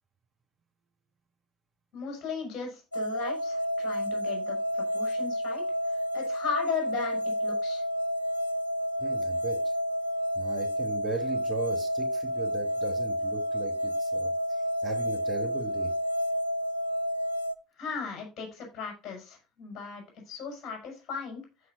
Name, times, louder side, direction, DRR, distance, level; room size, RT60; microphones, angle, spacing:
voice 1, 1.9-7.8 17.8-21.4, left 6 dB, 45° left, 2 dB, 6.0 m, -37 dB
sound 1, 2.9-17.5, equal, 90° left, 0.6 m, -30 dB
voice 2, 9.0-9.6 10.3-15.9, right 4 dB, 25° right, 2 dB, 3.2 m, -38 dB
15.0 x 5.8 x 2.6 m, 0.30 s
figure-of-eight pair, 65°, 0 cm